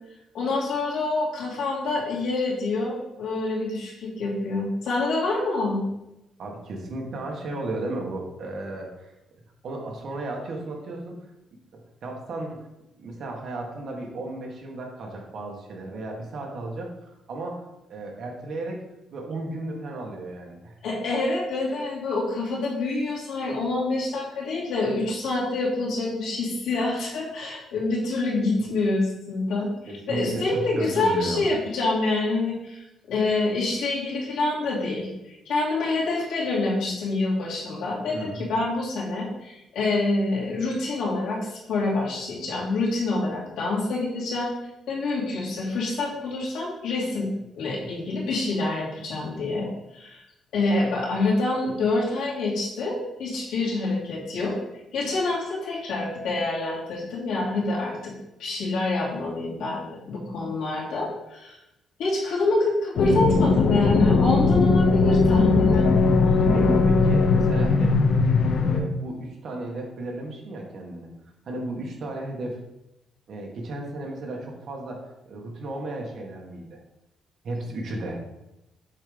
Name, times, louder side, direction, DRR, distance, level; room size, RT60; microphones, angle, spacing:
voice 1, 0.3-5.8 20.8-44.5 44.9-47.3 47.6-50.2 50.5-54.6 54.9-58.1 58.4-61.6 62.0-65.9, left 2 dB, 90° left, -5 dB, 2.4 m, -26 dB
voice 2, 6.4-9.1 9.6-11.2 12.0-12.7 13.0-17.6 17.9-18.8 19.1-20.7 29.9-31.4 38.1-38.6 66.5-68.0 68.6-71.1 71.4-72.6 73.3-76.8 77.4-78.2, right 2 dB, 50° right, 0 dB, 1.5 m, -34 dB
sound 1, 63.0-68.8, left 4 dB, 60° left, 0.7 m, -19 dB
7.4 x 3.6 x 5.1 m, 0.91 s
cardioid pair, 160°, 0 cm